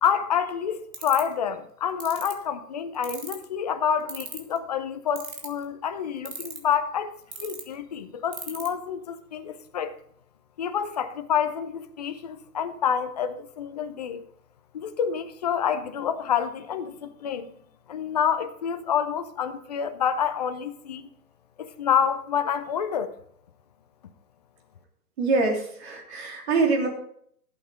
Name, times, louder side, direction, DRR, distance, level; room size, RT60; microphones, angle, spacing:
voice 1, 0.0-9.9 10.6-14.2 14.7-17.5 17.9-21.1 21.6-23.1, left 8 dB, 25° left, 0.6 m, -28 dB
sound 1, 0.9-1.3 2.0-2.3 3.0-3.5 4.1-4.6 5.2-5.6 6.3-6.7 7.3-7.6 8.3-8.7, right 6 dB, 60° right, 2.6 m, -35 dB
voice 2, 25.2-26.9, right 3 dB, 45° right, 3.1 m, -24 dB
14.0 x 8.2 x 3.8 m
figure-of-eight pair, 140°, 47 cm